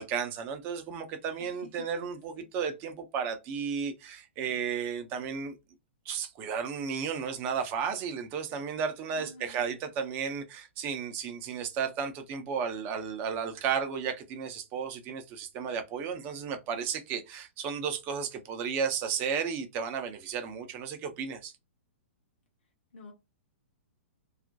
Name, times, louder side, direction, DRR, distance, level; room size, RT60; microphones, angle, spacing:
voice 1, 0.0-5.6 6.1-21.5, right 6 dB, 30° right, 0.5 m, -33 dB
voice 2, 9.2-9.7 22.9-23.1, left 1 dB, 55° left, 0.7 m, -48 dB
2.4 x 2.1 x 2.5 m
figure-of-eight pair, 110°, 7 cm